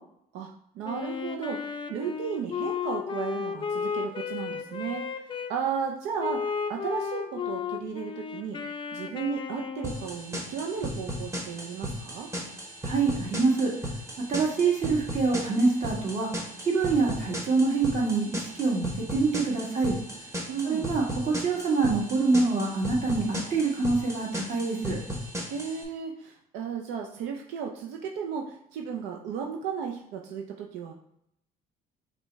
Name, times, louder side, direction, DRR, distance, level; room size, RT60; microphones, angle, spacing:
voice 1, 0.3-5.0 5.5-12.3 20.5-20.9 25.5-30.9, right 6 dB, 90° right, 1 dB, 0.5 m, -34 dB
Wind instrument woodwind instrument, 0.8-5.5 6.2-10.1, left 6 dB, 30° left, 0.4 m, -34 dB
sound 1, 9.8-25.8, equal, 15° right, 1.1 m, -36 dB
voice 2, 12.8-13.7 14.3-16.3 16.6-20.0 20.6-25.0, right 3 dB, 40° right, -3 dB, 1.7 m, -25 dB
5.0 x 2.2 x 4.5 m, 0.75 s
cardioid pair, 110°, 17 cm